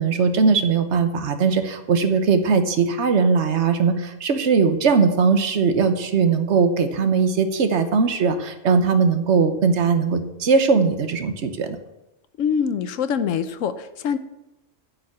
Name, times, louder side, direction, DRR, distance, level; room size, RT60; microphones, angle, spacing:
voice 1, 0.0-11.8, right 5 dB, 65° right, 8 dB, 1.3 m, -20 dB
voice 2, 12.4-14.2, left 7 dB, 80° left, 11 dB, 1.1 m, -24 dB
10.0 x 5.7 x 8.4 m, 0.92 s
omnidirectional pair, 1.3 m